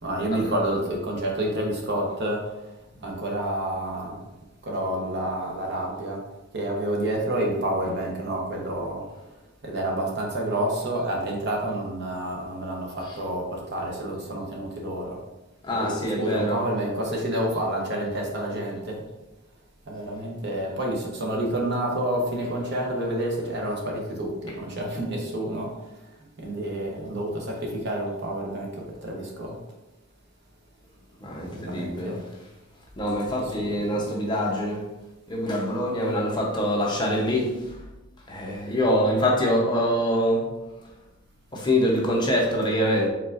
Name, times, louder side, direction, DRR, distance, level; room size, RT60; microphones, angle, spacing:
voice 1, 0.0-2.4 3.0-4.2 4.6-6.2 6.5-9.0 9.6-15.2 15.7-19.0 19.9-26.1 26.4-29.6 31.4-32.2 33.6-34.1, right 1 dB, 55° right, 0 dB, 0.9 m, -29 dB
voice 2, 15.6-16.7 24.5-24.6 31.2-32.3 33.0-34.9 35.3-37.8 38.3-40.5 41.5-43.1, equal, 20° left, -2 dB, 0.8 m, -25 dB
4.5 x 3.8 x 2.5 m, 1.0 s
head